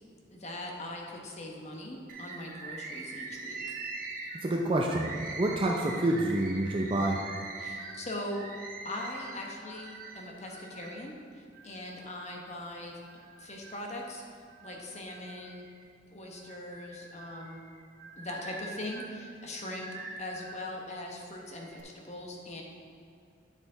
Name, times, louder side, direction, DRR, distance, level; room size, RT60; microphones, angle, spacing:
voice 1, 0.3-3.8 7.6-8.5 8.8-12.9 13.4-14.2 14.6-15.6 16.1-17.6 18.2-19.9 20.2-22.6, left 1 dB, 35° left, 0 dB, 1.0 m, -41 dB
Bird, 2.1-11.0 11.5-12.5 13.1-14.1 14.5-15.9 16.4-20.7 21.4-21.8, right 3 dB, 45° right, 0.9 m, -43 dB
voice 2, 4.4-7.2, right 1 dB, 30° right, 0 dB, 0.5 m, -28 dB
9.2 x 6.1 x 3.9 m, 2.6 s
head